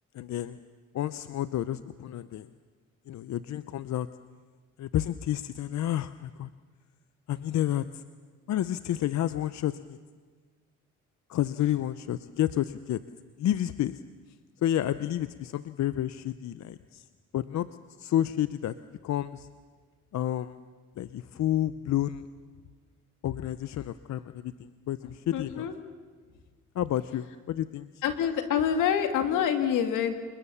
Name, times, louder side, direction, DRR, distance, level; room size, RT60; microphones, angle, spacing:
voice 1, 0.1-0.6 0.9-2.5 3.1-4.1 4.8-6.5 7.3-8.0 8.5-10.0 11.3-13.0 13.4-14.0 14.6-17.0 17.3-17.7 18.0-18.7 19.0-19.5 20.1-20.6 21.0-22.2 23.2-25.7 26.7-27.9, left 12 dB, 65° left, 13 dB, 0.7 m, -30 dB
voice 2, 25.3-25.7 28.0-30.2, left 8 dB, 90° left, 6 dB, 2.3 m, -26 dB
28.0 x 21.0 x 7.0 m, 1.5 s
cardioid pair, 90°, 30 cm